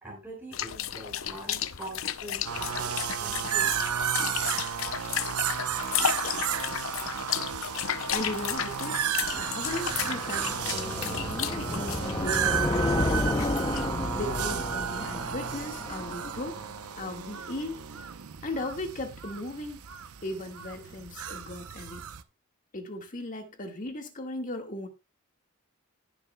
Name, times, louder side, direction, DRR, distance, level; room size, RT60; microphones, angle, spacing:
voice 1, 0.0-3.9 15.9-16.0, right 1 dB, 10° right, 3.1 m, -44 dB
sound 1, 0.5-14.1, left 9 dB, 60° left, 0.6 m, -34 dB
sound 2, 2.4-22.2, right 8 dB, 80° right, 0.7 m, -33 dB
voice 2, 8.1-9.0 9.3-13.5 14.1-16.6 17.0-17.8 18.4-19.8 20.2-22.1 22.7-24.9, left 1 dB, 35° left, 1.8 m, -37 dB
sound 3, 9.2-16.6, left 2 dB, 20° left, 0.6 m, -31 dB
18.5 x 7.1 x 2.2 m
head